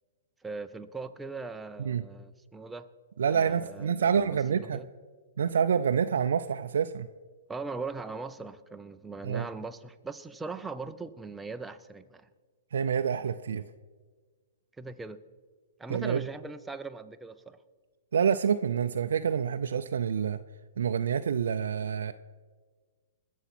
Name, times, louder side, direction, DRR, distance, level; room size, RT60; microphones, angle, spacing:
voice 1, 0.4-2.9 3.3-4.9 7.5-12.3 14.8-15.2 15.8-17.6, right 4 dB, 5° right, 9 dB, 0.6 m, -40 dB
voice 2, 3.2-4.8 5.4-7.1 9.2-9.5 12.7-13.6 15.9-16.2 18.1-20.4 20.8-22.1, right 7 dB, 80° right, 7 dB, 0.5 m, -27 dB
20.5 x 7.1 x 6.0 m, 1.5 s
hypercardioid pair, 145°, 0 cm